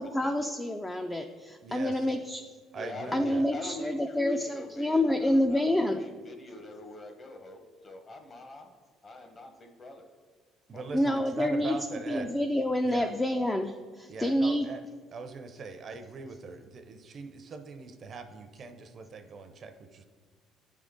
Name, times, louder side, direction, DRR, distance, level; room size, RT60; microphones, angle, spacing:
voice 1, 0.0-2.4 3.1-6.0 10.9-11.8 12.1-14.7, left 1 dB, 15° left, 5 dB, 0.3 m, -28 dB
voice 2, 1.6-2.2 2.7-3.4 10.7-12.3 12.8-13.1 14.1-14.8 15.1-20.0, right 4 dB, 40° right, 8 dB, 0.5 m, -41 dB
voice 3, 2.7-8.7 9.0-10.1 10.7-11.1, left 2 dB, 30° left, 5 dB, 0.8 m, -45 dB
9.6 x 3.7 x 3.6 m, 1.5 s
cardioid pair, 115°, 0 cm